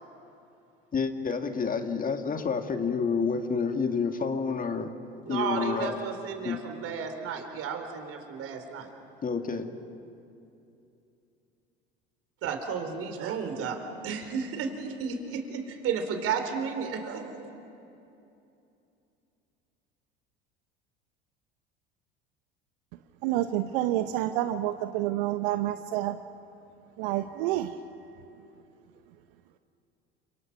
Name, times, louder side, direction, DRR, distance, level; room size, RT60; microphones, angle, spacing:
voice 1, 0.9-5.0 5.3-6.0 6.4-6.6 9.2-9.7, left 5 dB, 30° left, 6 dB, 2.0 m, -29 dB
voice 2, 5.2-8.9 12.4-13.8 14.0-17.5, right 6 dB, 50° right, 6 dB, 4.1 m, -33 dB
voice 3, 23.2-26.2 27.0-27.7, right 14 dB, 65° right, 9 dB, 1.0 m, -28 dB
29.5 x 27.0 x 6.1 m, 2.8 s
hypercardioid pair, 75°, 29 cm